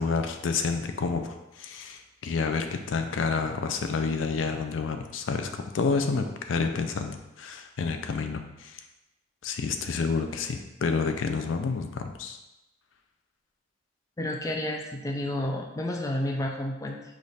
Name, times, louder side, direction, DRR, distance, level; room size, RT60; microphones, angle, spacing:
voice 1, 0.0-8.8 9.4-12.4, left 4 dB, 80° left, 6 dB, 0.4 m, -29 dB
voice 2, 14.2-17.0, left 1 dB, 15° left, 1 dB, 0.4 m, -30 dB
5.2 x 2.5 x 4.0 m, 0.96 s
head